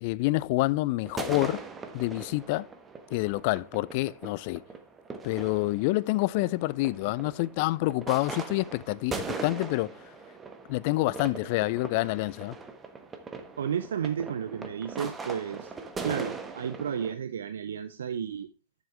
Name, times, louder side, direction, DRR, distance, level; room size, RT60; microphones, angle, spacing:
voice 1, 0.0-1.6 1.9-2.7 3.1-4.6 5.2-9.9 10.7-12.5, left 20 dB, 45° left, 0.4 m, -27 dB
sound 1, 1.0-17.1, right 4 dB, 15° right, 1.2 m, -40 dB
voice 2, 13.6-15.7 16.0-18.5, right 8 dB, 65° right, 0.6 m, -32 dB
10.5 x 7.3 x 3.4 m
figure-of-eight pair, 105°, 0 cm